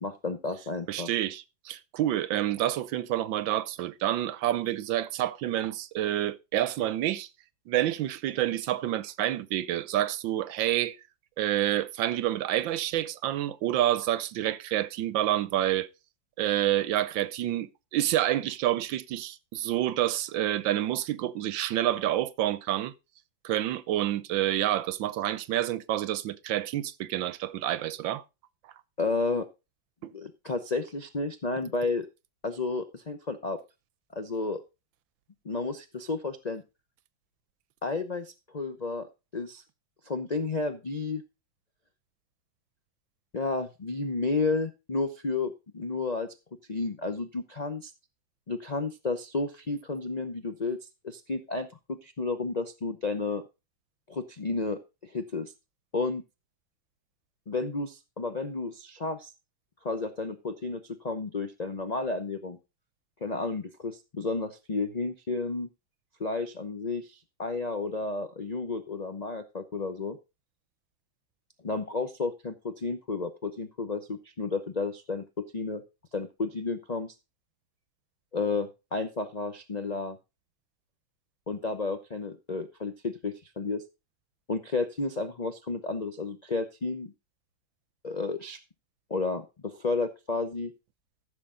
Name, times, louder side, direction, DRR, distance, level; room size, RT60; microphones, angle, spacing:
voice 1, 0.0-1.1 29.0-29.5 30.1-32.1 32.4-33.6 34.1-34.6 35.4-36.6 37.8-39.1 39.3-39.6 40.0-41.2 43.3-46.4 46.7-47.9 48.5-50.8 51.0-53.4 54.1-55.5 55.9-56.2 57.5-59.3 59.8-62.6 63.2-65.7 66.2-70.2 71.6-75.8 76.1-77.1 78.3-80.2 81.5-83.8 84.5-87.1 88.0-88.6 89.1-90.7, left 3 dB, 65° left, 0.4 m, -32 dB
voice 2, 0.9-7.3 7.7-11.0 11.4-15.9 16.4-22.9 23.4-28.2 30.0-30.1, right 13 dB, 80° right, 1.5 m, -28 dB
14.5 x 6.8 x 3.8 m
omnidirectional pair, 2.1 m